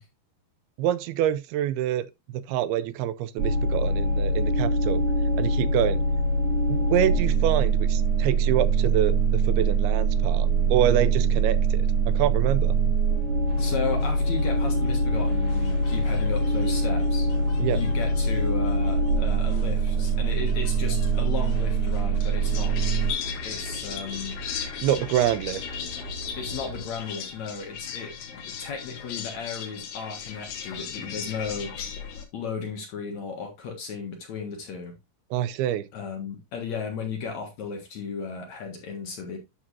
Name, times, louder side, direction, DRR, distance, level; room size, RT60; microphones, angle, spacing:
voice 1, 0.8-2.1 2.3-5.0 5.4-6.0 6.7-12.8 17.6-17.8 24.8-25.6 35.3-35.9, right 12 dB, 85° right, 2.6 m, -26 dB
sound 1, 3.4-23.1, right 3 dB, 55° right, 4.7 m, -23 dB
sound 2, 13.5-26.8, left 1 dB, 30° left, 3.5 m, -40 dB
voice 2, 13.6-17.3 17.7-22.7 23.4-24.4 26.4-31.7 32.3-35.0 35.9-39.4, left 5 dB, 55° left, 2.4 m, -35 dB
sound 3, 14.4-32.2, left 7 dB, 85° left, 3.6 m, -39 dB
11.0 x 6.0 x 2.6 m
omnidirectional pair, 4.5 m